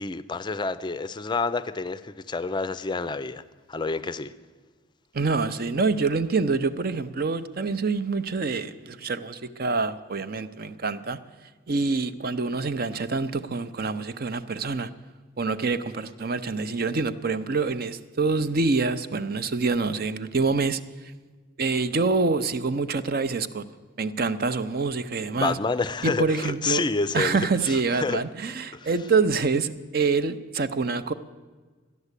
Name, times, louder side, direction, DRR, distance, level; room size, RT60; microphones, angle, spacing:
voice 1, 0.0-3.4 3.7-4.3 25.4-28.2 28.7-28.9, left 4 dB, 20° left, 0.4 m, -28 dB
voice 2, 5.1-11.2 11.7-14.9 15.4-20.8 21.6-23.6 24.0-25.6 26.0-26.8 27.1-31.1, right 4 dB, 50° right, 0.6 m, -26 dB
13.5 x 10.5 x 8.2 m
head